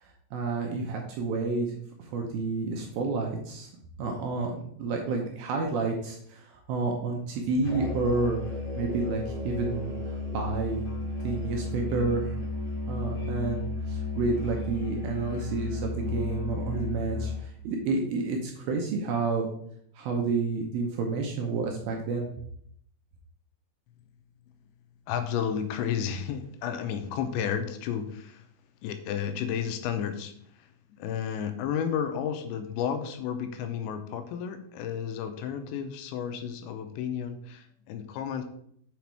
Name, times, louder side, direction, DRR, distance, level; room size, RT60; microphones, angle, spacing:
voice 1, 0.3-1.7 2.0-3.7 4.0-10.9 11.2-12.4 12.9-19.5 20.0-22.3, right 3 dB, 75° right, 1 dB, 2.3 m, -30 dB
Musical instrument, 7.6-17.5, left 3 dB, 30° left, 2.7 m, -33 dB
voice 2, 25.1-28.4 28.8-30.7 31.0-38.5, left 8 dB, 85° left, 8 dB, 3.0 m, -32 dB
7.1 x 5.1 x 4.6 m, 0.66 s
omnidirectional pair, 5.1 m